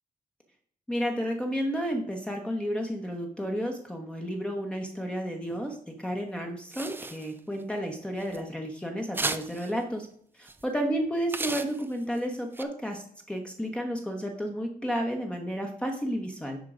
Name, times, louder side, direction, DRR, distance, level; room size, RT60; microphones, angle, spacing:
voice 1, 0.9-10.1 10.4-16.6, equal, 5° left, 2 dB, 0.9 m, -32 dB
sound 1, 6.7-7.6 8.2-8.4 9.1-9.7 10.5-10.6 11.3-12.2 12.5-12.6, right 3 dB, 15° right, 0.5 m, -34 dB
10.0 x 3.7 x 4.9 m, 0.62 s
wide cardioid pair, 155°, 15 cm